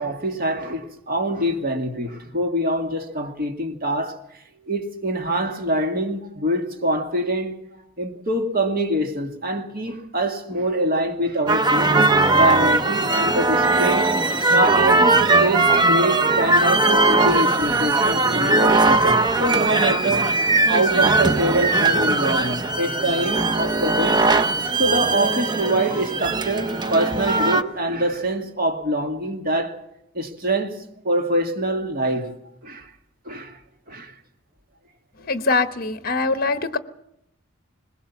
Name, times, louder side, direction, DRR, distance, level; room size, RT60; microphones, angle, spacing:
voice 1, 0.0-4.2 4.7-7.6 8.0-14.1 14.5-24.2 24.7-29.8 30.1-32.3 32.6-32.9 33.3-33.6 33.9-34.1, right 1 dB, 45° right, 2.2 m, -25 dB
sound 1, 11.5-27.6, right 2 dB, 20° right, 0.7 m, -19 dB
voice 2, 35.2-36.8, left 3 dB, 45° left, 1.1 m, -23 dB
21.5 x 20.5 x 7.2 m
head